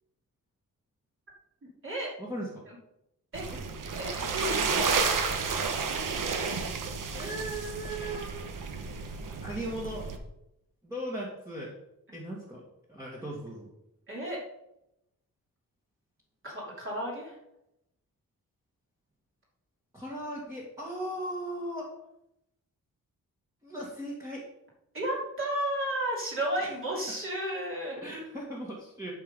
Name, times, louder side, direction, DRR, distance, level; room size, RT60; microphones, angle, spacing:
voice 1, 2.2-2.7 3.5-3.6 7.1-8.5 9.4-10.1 10.8-11.7 12.1-12.6 12.9-13.7 19.9-21.9 23.6-24.5 26.6-26.7 27.1-27.2 28.0-29.1, right 1 dB, 10° right, -5 dB, 1.8 m, -38 dB
sound 1, 3.3-10.2, right 5 dB, 65° right, 1.2 m, -31 dB
voice 2, 4.0-5.0 14.1-14.4 16.4-17.3 24.9-28.0, right 1 dB, 35° right, -4 dB, 3.2 m, -33 dB
11.5 x 5.7 x 5.4 m, 0.83 s
wide cardioid pair, 160°, 34 cm